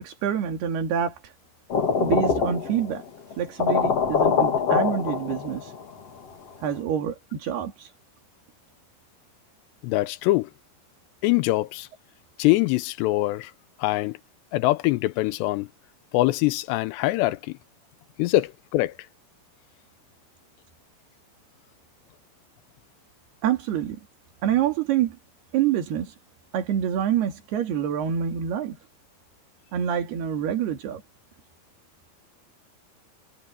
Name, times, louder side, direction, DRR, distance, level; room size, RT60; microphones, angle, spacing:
voice 1, 0.0-1.3 2.0-3.0 3.4-5.7 6.6-7.9 23.4-24.0 24.4-25.2 25.5-26.2 26.5-28.8 29.7-31.0, right 9 dB, 65° right, 4.3 m, -26 dB
sound 1, 1.7-3.0 3.3-3.4 3.6-5.8, left 6 dB, 40° left, 2.9 m, -23 dB
voice 2, 9.8-10.5 11.2-11.9 12.4-13.5 13.8-14.2 14.5-15.7 16.1-17.6 18.2-18.9, left 18 dB, 85° left, 2.7 m, -23 dB
omnidirectional pair, 5.1 m